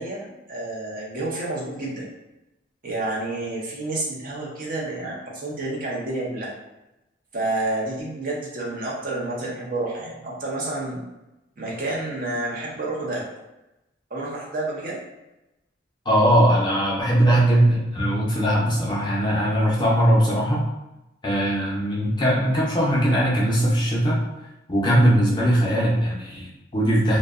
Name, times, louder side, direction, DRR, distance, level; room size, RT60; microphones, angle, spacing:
voice 1, 0.0-2.1 2.8-6.5 7.3-11.0 11.6-13.2 14.1-15.0 22.1-22.2, right 2 dB, 45° right, -4 dB, 0.6 m, -29 dB
voice 2, 16.1-20.6 21.2-24.2 24.7-27.2, equal, 25° left, -5 dB, 0.5 m, -20 dB
2.6 x 2.1 x 2.3 m, 0.96 s
head